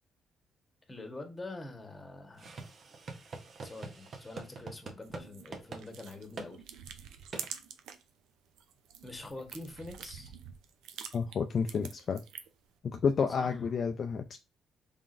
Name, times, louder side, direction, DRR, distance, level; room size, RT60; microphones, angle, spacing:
voice 1, 0.9-2.6 3.6-6.6 9.0-10.3 13.3-13.6, left 2 dB, 20° left, 1.2 m, -45 dB
sound 1, 2.4-5.3 5.5-5.8 6.4-6.5 7.3-7.5, right 3 dB, 50° right, 0.8 m, -44 dB
sound 2, 5.0-8.1 8.5-12.7, right 8 dB, 90° right, 0.4 m, -47 dB
voice 2, 11.1-12.2 12.8-14.4, left 6 dB, 50° left, 0.4 m, -30 dB
3.7 x 3.5 x 2.5 m
cardioid pair, 90°, 0 cm